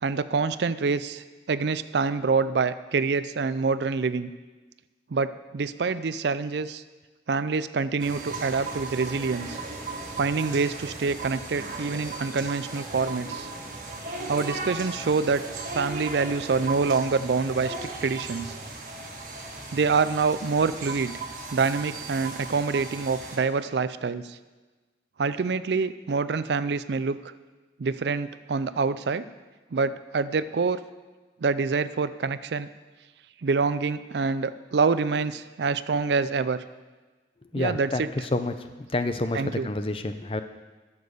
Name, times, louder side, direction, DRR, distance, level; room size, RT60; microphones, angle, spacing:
voice 1, 0.0-4.3 5.1-6.8 7.3-9.6 10.2-13.5 14.3-15.4 15.7-18.5 19.7-21.2 21.5-24.4 25.2-27.3 27.8-29.2 29.7-30.8 31.4-32.7 33.4-36.6 37.6-38.1 39.3-39.7, right 4 dB, 70° right, 14 dB, 0.4 m, -26 dB
sound 1, 8.0-23.4, right 3 dB, 45° right, 1.7 m, -37 dB
voice 2, 37.5-38.0 38.3-38.5 38.9-40.4, left 2 dB, 30° left, 9 dB, 0.6 m, -28 dB
12.5 x 7.2 x 6.7 m, 1.3 s
head